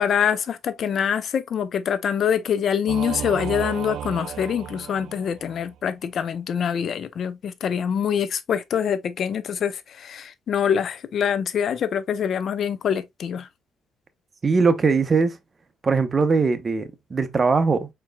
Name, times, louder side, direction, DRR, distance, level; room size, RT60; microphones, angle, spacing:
voice 1, 0.0-13.5, left 8 dB, 60° left, 0.6 m, -25 dB
Singing / Musical instrument, 2.9-5.7, right 11 dB, 80° right, 0.4 m, -34 dB
voice 2, 14.4-15.4 15.8-17.9, right 4 dB, 35° right, 0.9 m, -20 dB
5.1 x 4.5 x 2.3 m
cardioid pair, 90°, 0 cm